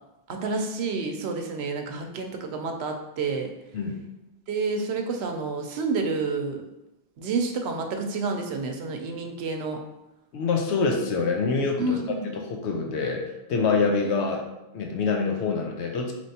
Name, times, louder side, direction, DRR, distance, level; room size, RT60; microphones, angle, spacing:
voice 1, 0.3-3.5 4.5-6.6 7.2-9.8 11.8-12.3, right 3 dB, 75° right, 4 dB, 0.8 m, -29 dB
voice 2, 10.3-12.0 12.3-14.4 14.7-16.1, left 4 dB, 85° left, 2 dB, 0.9 m, -25 dB
4.3 x 3.1 x 2.7 m, 0.94 s
omnidirectional pair, 1.1 m